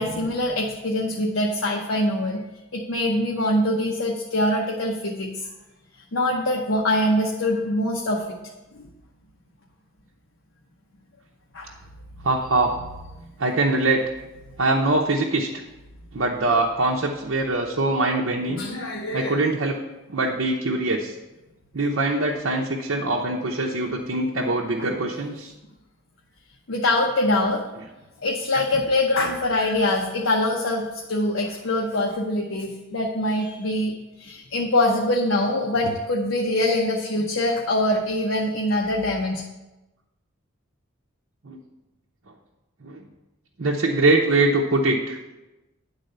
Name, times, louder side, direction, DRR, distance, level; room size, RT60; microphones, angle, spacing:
voice 1, 0.0-2.4 2.7-5.3 6.1-8.4 8.7-8.9 11.5-11.7 18.5-19.4 24.8-24.9 26.7-27.6 28.2-33.9 34.2-39.4, left 1 dB, 70° left, -1 dB, 0.9 m, -24 dB
voice 2, 12.2-12.7 13.4-14.0 14.6-15.5 16.1-18.6 19.1-19.8 20.1-21.1 21.7-25.5 41.4-41.6 42.8-43.0 43.6-45.2, right 2 dB, 65° right, -1 dB, 0.8 m, -23 dB
10.5 x 4.1 x 6.6 m, 1.0 s
head